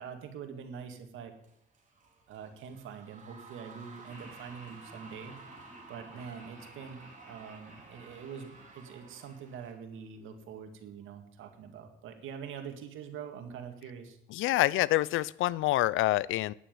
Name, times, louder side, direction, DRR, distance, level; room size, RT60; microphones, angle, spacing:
voice 1, 0.0-1.3 2.3-5.4 5.9-14.2, right 7 dB, 85° right, 6 dB, 2.1 m, -44 dB
sound 1, 1.4-9.7, right 4 dB, 40° right, 4.1 m, -53 dB
Laughter, 4.1-10.3, right 1 dB, 5° left, 7.3 m, -56 dB
voice 2, 14.3-16.5, left 16 dB, 85° left, 22 dB, 0.5 m, -27 dB
10.0 x 9.0 x 9.2 m, 0.76 s
cardioid pair, 90°, 20 cm